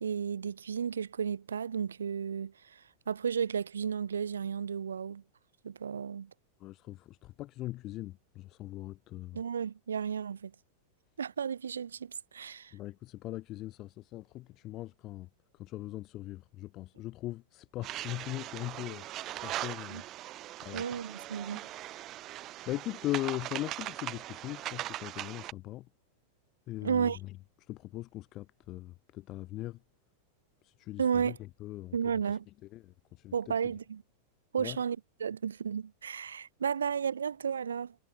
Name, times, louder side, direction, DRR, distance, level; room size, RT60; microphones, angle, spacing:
voice 1, 0.0-5.2 5.6-6.3 9.3-10.5 11.2-12.7 19.9-20.0 20.7-21.6 26.8-27.2 31.0-31.4 31.9-32.4 33.3-34.0 34.5-37.9, right 7 dB, 70° right, 0.7 m, -33 dB
voice 2, 6.6-9.4 12.7-20.0 20.6-20.8 21.5-21.6 22.7-25.9 26.7-29.8 30.6-32.0 32.3-33.7 34.6-34.8, left 16 dB, 35° left, 1.3 m, -40 dB
sound 1, 17.8-25.5, right 15 dB, 35° right, 2.4 m, -40 dB
figure-of-eight pair, 90°, 0 cm